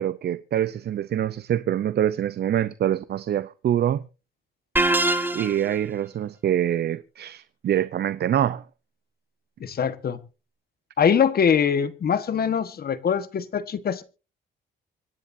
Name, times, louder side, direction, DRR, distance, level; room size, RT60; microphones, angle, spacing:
voice 1, 0.0-4.0 5.3-8.6, right 10 dB, 55° right, 0.7 m, -25 dB
sound 1, 4.8-5.8, right 2 dB, 10° right, 1.8 m, -23 dB
voice 2, 9.6-10.2 11.0-14.0, left 7 dB, 50° left, 1.4 m, -23 dB
25.5 x 10.0 x 2.7 m
cardioid pair, 90°, 20 cm